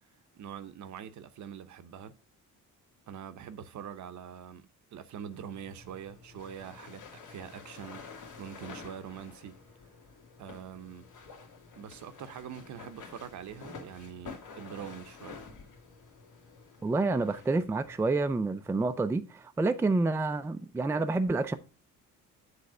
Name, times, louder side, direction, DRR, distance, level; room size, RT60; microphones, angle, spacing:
voice 1, 0.3-2.2 3.1-9.6 10.4-11.1 11.8-15.4, right 8 dB, 60° right, 0.8 m, -44 dB
sound 1, 5.3-18.1, left 5 dB, 70° left, 2.1 m, -49 dB
voice 2, 16.8-21.5, right 3 dB, 10° right, 0.4 m, -28 dB
7.9 x 3.2 x 6.0 m
cardioid pair, 125°, 32 cm